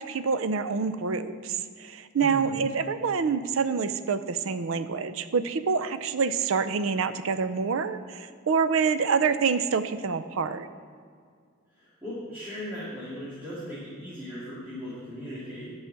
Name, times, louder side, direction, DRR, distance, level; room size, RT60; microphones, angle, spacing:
voice 1, 0.0-10.7, right 5 dB, 75° right, 12 dB, 0.5 m, -27 dB
voice 2, 2.2-2.6 11.7-15.7, equal, 10° right, -12 dB, 2.4 m, -38 dB
11.0 x 4.8 x 7.5 m, 2.1 s
head